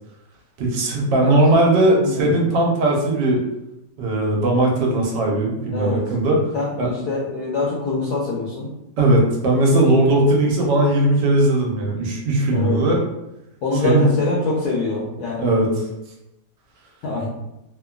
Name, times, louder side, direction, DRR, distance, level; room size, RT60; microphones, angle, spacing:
voice 1, 0.6-3.4 4.0-6.4 6.8-6.9 9.0-13.0 13.8-14.1 15.4-15.7, right 1 dB, 85° right, -1 dB, 1.3 m, -18 dB
voice 2, 1.2-1.6 2.0-2.3 5.7-6.0 6.5-8.7 12.5-12.8 13.6-15.5 17.0-17.3, left 3 dB, 75° left, -4 dB, 1.1 m, -24 dB
3.0 x 2.1 x 2.3 m, 0.89 s
omnidirectional pair, 1.9 m